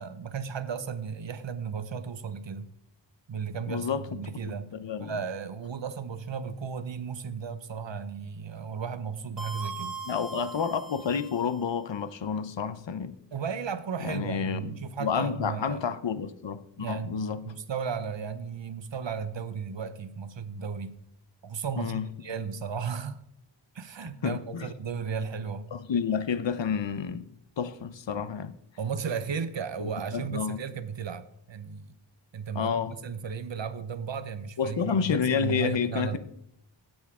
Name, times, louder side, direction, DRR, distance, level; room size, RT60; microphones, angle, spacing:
voice 1, 0.0-2.7 3.3-4.7 5.0-10.0 13.3-15.9 16.8-21.0 21.4-23.2 23.7-25.7 28.8-31.9 32.3-32.7 33.0-36.2, right 6 dB, 70° right, 0.8 m, -35 dB
voice 2, 3.7-5.2 10.1-13.1 14.0-14.7 15.0-17.4 21.8-22.1 24.2-24.7 25.7-27.3 27.6-28.5 29.8-30.6 32.5-33.0 34.6-36.2, left 6 dB, 70° left, 0.7 m, -30 dB
sound 1, 9.4-11.7, right 2 dB, 45° right, 1.3 m, -40 dB
16.0 x 6.4 x 3.6 m
wide cardioid pair, 60°, 46 cm